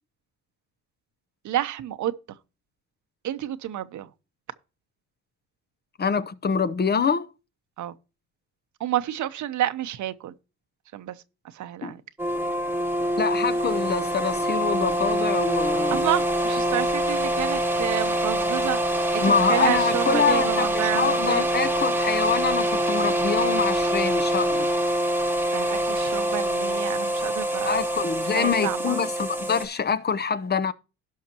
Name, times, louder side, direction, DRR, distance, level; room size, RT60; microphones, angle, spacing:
voice 1, 1.4-2.1 3.2-4.1 7.8-8.0 8.8-10.3 10.9-11.2 11.5-12.0 15.9-18.8 19.1-21.5 25.5-27.8 28.2-29.1, right 12 dB, 70° right, 0.9 m, -29 dB
voice 2, 6.0-7.3 11.8-11.9 13.2-16.0 19.2-24.7 27.7-30.7, left 6 dB, 35° left, 0.7 m, -25 dB
sound 1, 12.2-29.7, right 1 dB, 5° right, 1.2 m, -25 dB
17.0 x 5.7 x 3.0 m
cardioid pair, 90°, 30 cm